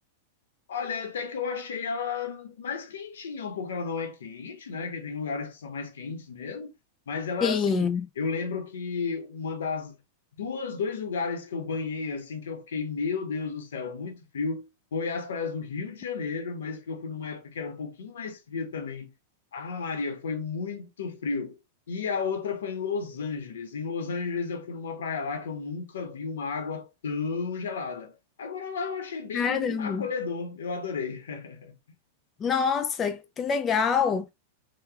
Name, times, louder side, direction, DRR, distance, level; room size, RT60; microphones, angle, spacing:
voice 1, 0.7-6.7 7.1-10.0 10.3-19.1 19.5-21.6 21.9-31.7, left 5 dB, 85° left, 1.0 m, -33 dB
voice 2, 7.4-8.0 29.3-30.1 32.4-34.3, left 6 dB, 25° left, 0.3 m, -25 dB
3.0 x 2.3 x 3.5 m
hypercardioid pair, 130°, 0 cm